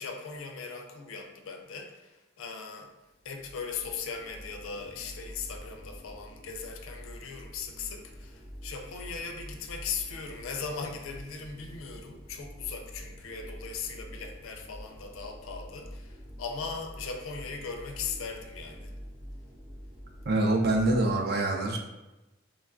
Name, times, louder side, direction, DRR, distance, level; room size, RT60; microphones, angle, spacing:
voice 1, 0.0-2.9 3.2-18.9, left 5 dB, 80° left, 3 dB, 0.4 m, -39 dB
sound 1, 3.1-21.1, equal, 75° right, 1.1 m, -46 dB
voice 2, 20.3-21.8, right 2 dB, 50° right, 2 dB, 0.4 m, -25 dB
3.1 x 2.2 x 2.4 m, 1.0 s
head